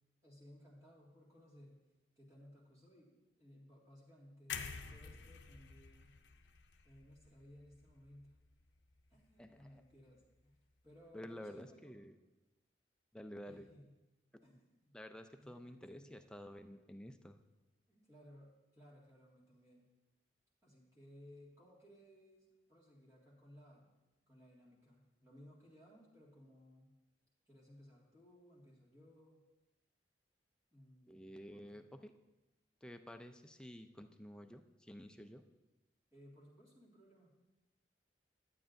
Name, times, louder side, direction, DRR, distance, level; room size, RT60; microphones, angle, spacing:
voice 1, 0.2-1.8 2.2-6.1 6.8-8.3 9.1-10.6 10.8-12.0 13.4-13.9 14.4-14.9 15.4-16.2 17.9-19.9 20.6-23.9 24.3-26.9 27.5-29.4 30.7-31.8 36.1-37.3, equal, 20° right, -5 dB, 2.0 m, -61 dB
sound 1, 4.5-8.5 8.9-9.1, left 6 dB, 90° left, 0.5 m, -49 dB
voice 2, 9.4-9.8 11.1-12.2 13.1-13.7 14.5-14.6 14.9-17.4 31.1-32.1 32.8-35.4, equal, 5° left, 7 dB, 0.3 m, -51 dB
11.0 x 8.6 x 2.6 m, 1.1 s
head